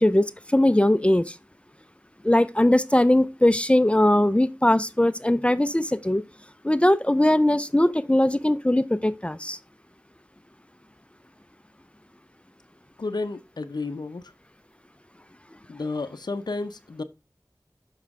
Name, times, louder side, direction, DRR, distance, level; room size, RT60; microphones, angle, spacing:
voice 1, 0.0-1.4 2.2-6.2 6.6-9.6, left 1 dB, 15° left, 0.4 m, -20 dB
voice 2, 13.0-14.3 15.7-17.0, left 3 dB, 85° left, 0.6 m, -32 dB
7.1 x 5.7 x 3.5 m
wide cardioid pair, 50°, 7 cm